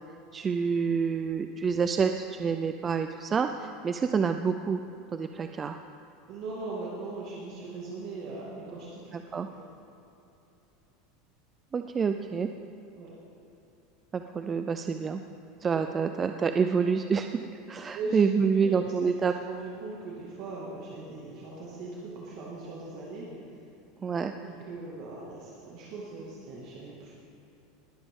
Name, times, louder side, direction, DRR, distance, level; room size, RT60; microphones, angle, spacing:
voice 1, 0.3-4.8 5.1-5.8 9.1-9.5 11.7-12.5 14.1-15.2 15.6-17.4 17.7-19.3 24.0-24.3, right 6 dB, 15° right, 7 dB, 0.3 m, -27 dB
voice 2, 6.3-9.2 9.4-9.7 13.0-13.1 17.9-18.2 18.6-18.7 19.0-19.1 19.4-23.3 24.4-27.2, right 3 dB, 40° right, -4 dB, 1.9 m, -40 dB
20.0 x 12.5 x 3.7 m, 2.9 s
supercardioid pair, 175°, 0 cm